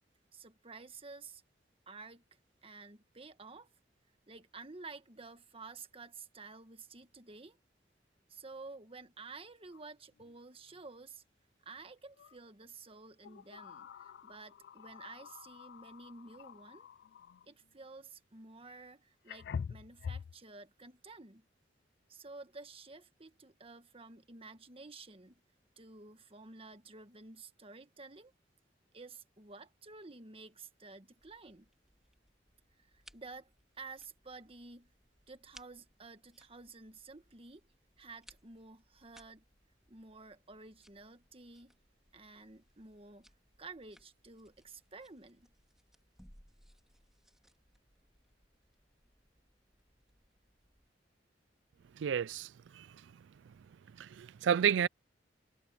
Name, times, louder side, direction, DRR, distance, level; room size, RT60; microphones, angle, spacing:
voice 1, 0.3-1.4 1.9-3.7 4.3-7.6 8.3-11.2 11.6-16.9 17.5-21.5 22.1-25.4 25.8-28.3 28.9-31.7 32.8-34.9 35.3-37.7 38.0-39.4 39.9-41.7 42.1-43.3 43.6-45.5, right 3 dB, 30° right, 1.5 m, -52 dB
sound 1, 9.7-9.8 10.2-10.4 12.2-12.4 13.2-17.5 18.7-18.8 19.3-20.4, left 6 dB, 65° left, 0.3 m, -46 dB
sound 2, 31.2-50.9, equal, 5° right, 2.8 m, -65 dB
voice 2, 52.0-52.9 54.0-54.9, right 8 dB, 90° right, 0.4 m, -31 dB
head